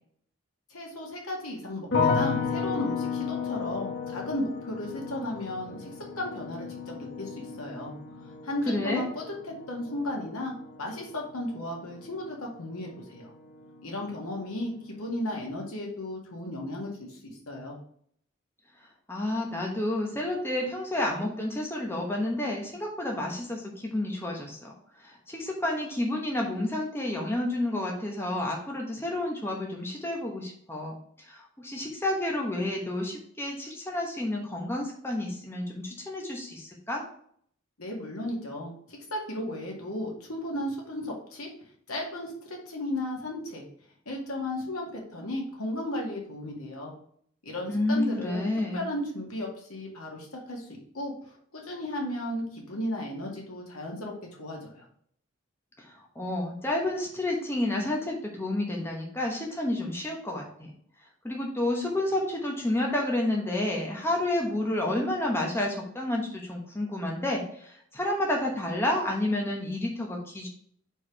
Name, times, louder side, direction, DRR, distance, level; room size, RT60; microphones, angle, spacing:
voice 1, 0.7-5.9 6.2-7.9 8.2-9.2 9.7-13.3 13.8-17.8 37.8-41.5 41.9-43.6 44.1-46.9 47.4-50.7 50.9-54.1 54.4-54.8, left 1 dB, 90° left, -1 dB, 2.0 m, -35 dB
sound 1, 1.9-13.0 13.3-14.0, left 5 dB, 50° left, 1.0 m, -33 dB
voice 2, 8.7-9.0 19.1-24.7 25.0-37.0 47.7-48.9 55.8-60.7 61.2-70.5, left 1 dB, 10° left, 0 dB, 1.0 m, -30 dB
4.8 x 4.5 x 4.9 m, 0.62 s
head